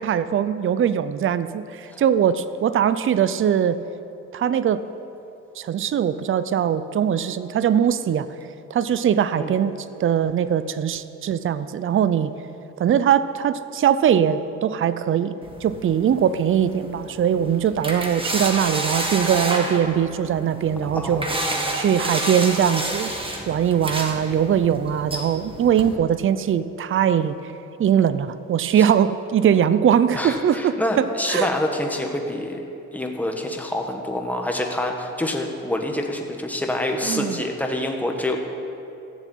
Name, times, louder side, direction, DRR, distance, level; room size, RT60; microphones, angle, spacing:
voice 1, 0.0-3.8 4.3-4.8 5.6-8.3 8.7-12.3 12.8-15.3 15.6-21.2 21.7-23.1 23.5-27.3 27.8-31.5 37.0-37.4, right 9 dB, 45° right, 14 dB, 0.6 m, -21 dB
sound 1, 15.4-25.9, right 2 dB, 15° right, 1.9 m, -30 dB
voice 2, 20.9-21.8 28.8-28.9 30.1-32.6 32.9-38.4, left 1 dB, 5° left, 2 dB, 1.7 m, -27 dB
15.0 x 7.2 x 8.5 m, 2.8 s
cardioid pair, 90°, 30 cm